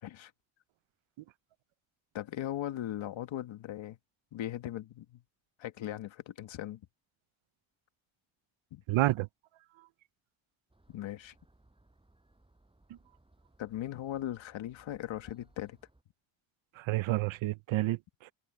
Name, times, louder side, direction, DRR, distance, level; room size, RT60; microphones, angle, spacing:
voice 1, 2.1-4.0 4.3-5.2 5.6-6.8 8.7-8.8 10.9-11.3 13.6-15.8, left 12 dB, 75° left, 1.9 m, -38 dB
voice 2, 8.9-9.3 9.8-9.9 12.9-13.0 16.7-18.3, right 17 dB, 80° right, 0.8 m, -30 dB
sound 1, 10.7-16.0, right 2 dB, 10° right, 7.9 m, -65 dB
cardioid pair, 105°, 47 cm